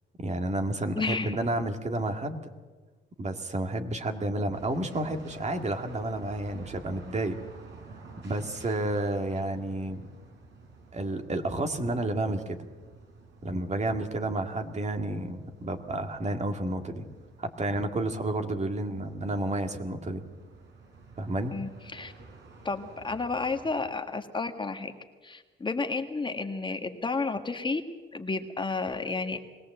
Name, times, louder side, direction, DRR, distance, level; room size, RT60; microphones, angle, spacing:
voice 1, 0.2-2.4 3.2-7.4 8.2-10.0 10.9-12.7 13.4-17.1 17.4-20.2 21.2-21.5, right 2 dB, 35° right, 6 dB, 2.1 m, -31 dB
voice 2, 0.9-1.3 21.5-22.1 22.6-24.9 25.2-27.8 28.1-29.6, left 3 dB, 25° left, 5 dB, 1.6 m, -31 dB
sound 1, 4.5-23.9, right 4 dB, 65° right, 5.3 m, -51 dB
22.0 x 17.5 x 7.9 m, 1.4 s
cardioid pair, 90°, 20 cm